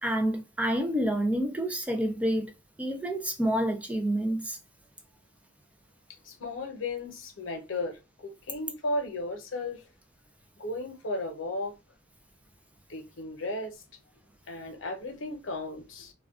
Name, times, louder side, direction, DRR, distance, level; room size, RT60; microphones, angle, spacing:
voice 1, 0.0-2.5 2.8-4.6, right 1 dB, 5° right, 0.4 m, -28 dB
voice 2, 6.2-9.8 10.6-11.7 12.9-13.8 14.5-16.1, left 2 dB, 90° left, 0.8 m, -35 dB
2.3 x 2.2 x 3.5 m
head